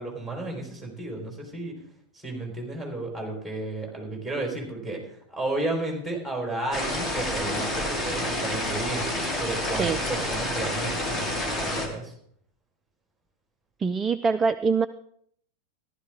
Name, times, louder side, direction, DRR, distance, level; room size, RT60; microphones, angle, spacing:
voice 1, 0.0-1.8 2.2-9.0 9.4-12.1, right 2 dB, 5° left, 0 dB, 4.3 m, -33 dB
sound 1, 6.7-11.9, left 1 dB, 20° left, 2.2 m, -29 dB
voice 2, 13.8-14.9, right 5 dB, 20° right, 12 dB, 0.4 m, -23 dB
15.0 x 12.0 x 3.7 m, 0.66 s
figure-of-eight pair, 90°, 0 cm